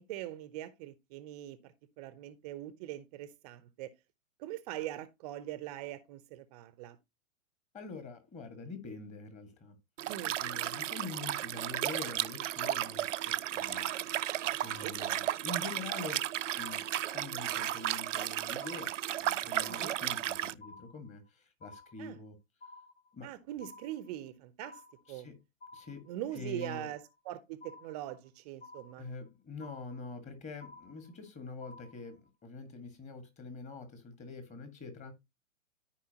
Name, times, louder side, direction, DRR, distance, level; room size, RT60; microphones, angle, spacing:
voice 1, 0.0-3.9 4.4-7.0 10.1-10.4 14.7-14.9 19.7-19.9 22.0-22.2 23.2-24.8 25.1-25.3 26.1-27.0 27.2-29.1, right 13 dB, 30° right, 0.7 m, -42 dB
voice 2, 7.7-9.8 10.4-13.9 14.6-16.3 16.6-22.4 23.1-23.3 25.1-25.4 25.7-26.9 29.0-35.1, left 3 dB, 15° left, 1.7 m, -45 dB
Liquid, 10.0-20.5, right 12 dB, 65° right, 0.5 m, -34 dB
sound 1, 12.6-13.3 13.6-14.3 14.6-15.3 15.6-16.3 16.6-17.3 17.6-18.3 18.6-19.3 19.6-20.3 20.6-21.3 21.6-22.3 22.6-23.3 23.6-24.3 24.6-25.3 25.6-26.3 26.6-27.3 27.6-28.3 28.6-29.3 29.6-30.3 30.6-31.3 31.6-32.3, left 3 dB, 60° left, 2.1 m, -53 dB
13.0 x 4.9 x 2.8 m
figure-of-eight pair, 115°, 40 cm